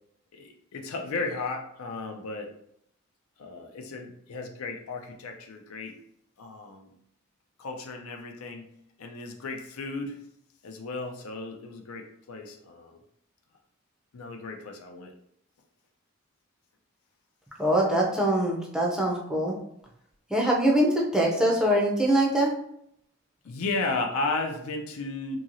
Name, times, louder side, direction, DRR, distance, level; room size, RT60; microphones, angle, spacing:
voice 1, 0.3-2.5 3.4-6.0 6.4-6.9 7.6-8.7 9.0-10.2 10.6-13.0 14.1-15.1 23.4-25.4, left 3 dB, 80° left, 4 dB, 0.5 m, -34 dB
voice 2, 17.6-19.5 20.3-22.5, right 1 dB, 5° right, -2 dB, 0.5 m, -23 dB
3.0 x 2.7 x 2.6 m, 0.72 s
head